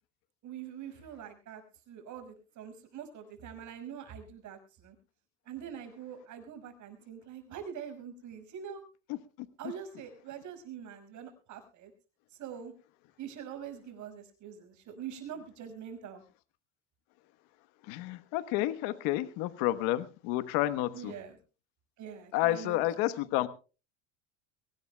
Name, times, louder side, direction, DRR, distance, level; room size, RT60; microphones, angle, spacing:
voice 1, 0.4-5.0 5.5-8.8 9.6-11.9 12.3-12.7 13.2-16.2 20.9-21.4 22.0-23.1, right 8 dB, 55° right, 6 dB, 5.7 m, -44 dB
voice 2, 17.8-21.1 22.3-23.5, left 15 dB, 70° left, 12 dB, 1.2 m, -30 dB
23.0 x 17.5 x 2.2 m, 0.33 s
supercardioid pair, 100°, 35 cm